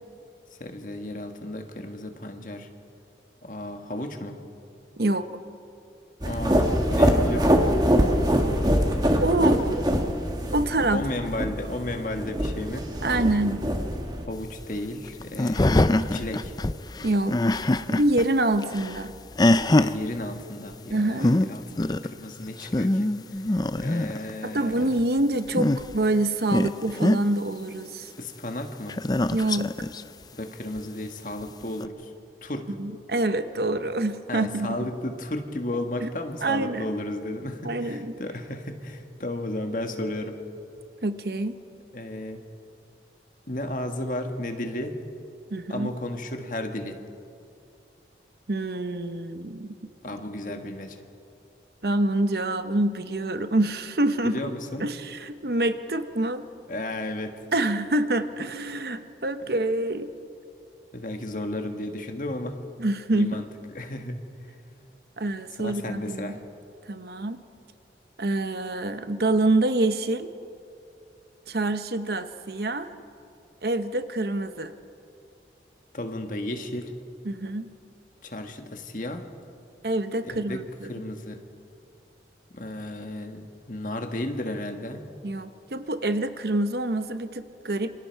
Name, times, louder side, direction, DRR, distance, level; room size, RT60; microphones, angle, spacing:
voice 1, 0.6-2.7 3.4-4.4 6.2-7.6 10.9-12.9 14.3-16.5 19.8-23.1 23.8-25.0 28.2-29.0 30.3-32.1 32.4-32.7 34.3-40.4 41.9-42.4 43.5-45.0 45.7-47.0 50.0-51.0 54.2-54.9 56.7-57.4 60.9-62.7 63.1-63.5 63.7-64.2 65.6-66.4 75.9-76.9 78.2-79.3 80.2-80.6 80.9-81.4 82.5-85.1, left 1 dB, 45° left, 5 dB, 1.6 m, -33 dB
sound 1, 6.2-14.3, equal, 25° right, 1.7 m, -24 dB
voice 2, 9.2-9.6 10.5-11.0 13.0-13.6 17.0-17.4 17.9-19.1 20.9-21.3 24.4-28.1 29.3-29.7 32.8-34.9 36.0-36.1 36.4-37.0 37.6-38.2 41.0-41.5 45.5-45.9 48.5-49.7 51.8-54.4 54.8-56.4 57.5-60.1 62.8-63.5 65.2-66.3 66.9-67.4 68.2-70.3 71.5-72.9 73.6-74.7 77.2-77.7 79.8-80.9 85.2-87.9, right 2 dB, 65° right, 10 dB, 0.9 m, -26 dB
sound 2, 14.3-18.3 18.5-20.0 20.9-21.0 21.2-21.5 21.8-22.1 22.5-24.3 25.4-26.0 26.5-27.2 28.9-30.0 30.8-30.9 31.8-31.9, left 1 dB, 20° left, 0.5 m, -23 dB
27.5 x 24.5 x 4.7 m, 2.6 s
head